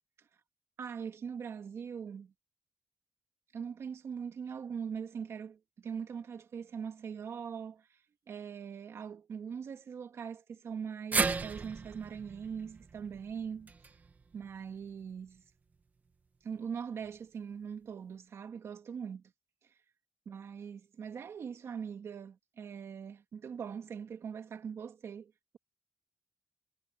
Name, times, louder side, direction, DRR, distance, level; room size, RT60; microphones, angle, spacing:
voice 1, 0.8-2.3 3.5-8.0 8.3-13.7 14.3-15.4 16.4-19.2 20.3-25.6, right 7 dB, 65° right, 2.3 m, -41 dB
sound 1, 11.1-15.4 15.7-15.8 17.0-17.1, right 4 dB, 35° right, 1.4 m, -37 dB
wide cardioid pair, 175°, 5 cm